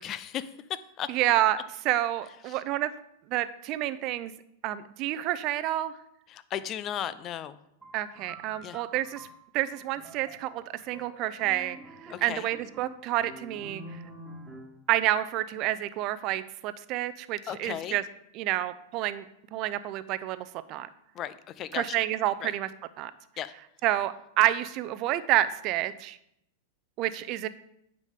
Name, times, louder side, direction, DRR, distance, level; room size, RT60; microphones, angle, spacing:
voice 1, 0.0-1.1 2.4-2.6 6.3-7.6 8.6-8.8 12.1-12.5 17.5-18.0 21.1-22.0 22.4-22.5 23.4-23.5, left 10 dB, 35° left, 15 dB, 0.5 m, -36 dB
voice 2, 1.1-2.9 3.3-4.3 4.6-5.9 7.9-9.3 9.5-14.0 14.9-18.0 18.3-19.2 19.5-20.9 21.7-22.7 23.0-23.1 23.8-26.2 27.0-27.5, right 14 dB, 45° right, 14 dB, 0.5 m, -29 dB
sound 1, 7.8-14.9, right 1 dB, 5° right, 2.3 m, -47 dB
9.2 x 5.3 x 3.7 m, 0.75 s
hypercardioid pair, 110°, 0 cm